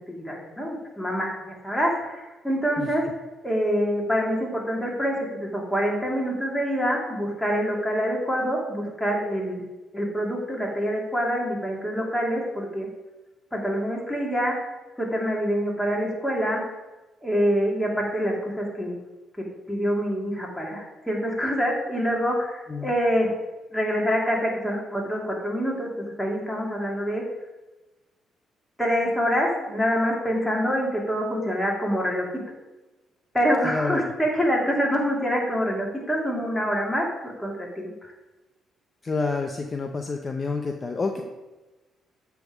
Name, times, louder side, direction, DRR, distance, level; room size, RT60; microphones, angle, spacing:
voice 1, 0.1-3.0 3.4-9.6 9.9-12.9 13.5-14.5 15.0-16.6 17.2-19.0 19.4-23.3 23.7-27.2 28.8-32.3 33.3-37.9, equal, 5° left, -3 dB, 2.5 m, -26 dB
voice 2, 33.6-34.1 39.0-41.2, left 4 dB, 35° left, 4 dB, 0.6 m, -28 dB
7.9 x 3.5 x 5.9 m, 1.1 s
supercardioid pair, 65°, 0 cm